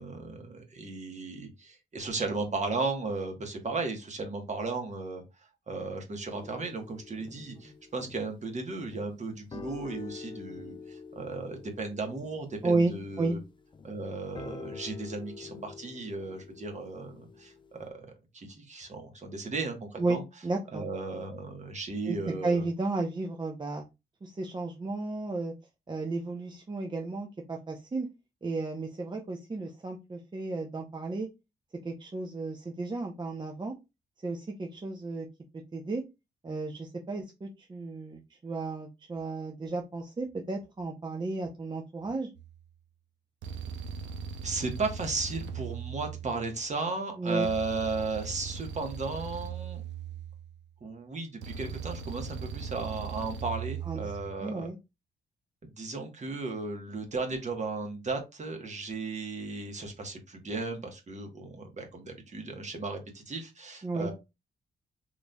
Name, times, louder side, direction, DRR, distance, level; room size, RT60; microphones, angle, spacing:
voice 1, 0.0-5.2 5.7-13.4 13.8-17.5 17.9-18.1 18.3-20.2 20.7-22.6 44.4-49.8 50.8-54.7 55.6-64.1, right 3 dB, 40° right, 4 dB, 1.2 m, -35 dB
sound 1, 6.3-17.9, left 5 dB, 25° left, 0.4 m, -47 dB
voice 2, 12.6-13.4 20.0-20.8 22.1-23.8 24.2-25.5 25.9-28.1 28.4-31.3 31.8-33.7 34.2-35.3 35.7-36.0 36.4-42.3 47.2-47.5 53.8-54.0 54.4-54.8 63.8-64.1, right 3 dB, 25° right, 2 dB, 0.6 m, -33 dB
sound 2, 42.4-42.6 43.4-46.7 47.4-50.7 51.4-54.4, right 6 dB, 85° right, 0.6 m, -39 dB
4.0 x 3.0 x 2.2 m, 0.24 s
cardioid pair, 80°, 18 cm